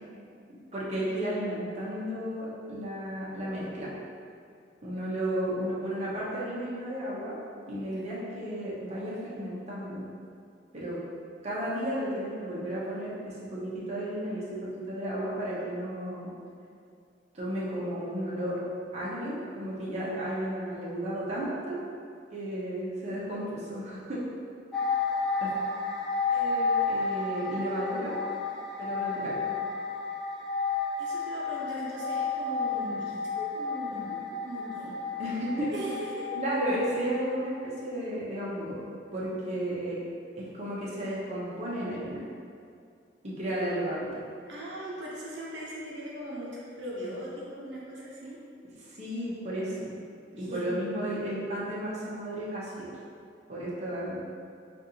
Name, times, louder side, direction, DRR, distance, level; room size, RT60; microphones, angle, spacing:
voice 1, 0.7-3.9 4.8-7.4 7.7-10.0 10.7-11.0 11.4-16.3 17.3-18.6 18.9-21.8 22.3-24.2 25.4-25.5 26.3-28.2 28.8-29.4 35.2-35.7 36.3-38.8 39.1-40.0 40.3-42.2 43.2-44.2 48.8-49.9 50.3-52.9 53.5-54.2, right 1 dB, 40° right, -7 dB, 0.8 m, -33 dB
sound 1, 24.7-37.2 37.5-37.7, left 4 dB, ahead, 0.4 m, -31 dB
voice 2, 31.0-34.2 34.4-34.9 35.7-36.3 44.5-48.4 50.4-51.0, right 1 dB, 75° right, -6 dB, 0.7 m, -39 dB
5.1 x 2.5 x 2.8 m, 2.4 s
head